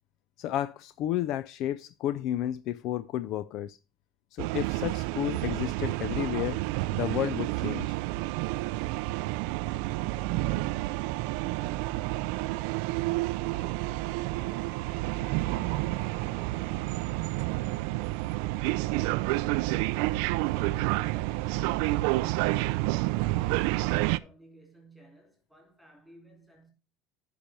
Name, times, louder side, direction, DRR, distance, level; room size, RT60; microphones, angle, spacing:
voice 1, 0.4-3.8 4.3-6.6 6.9-8.0, left 12 dB, 55° left, 0.4 m, -32 dB
sound 1, 4.4-24.2, right 19 dB, 75° right, 0.3 m, -29 dB
voice 2, 22.4-26.7, equal, ahead, 3.7 m, -56 dB
10.0 x 5.4 x 4.4 m
supercardioid pair, 130°, 0 cm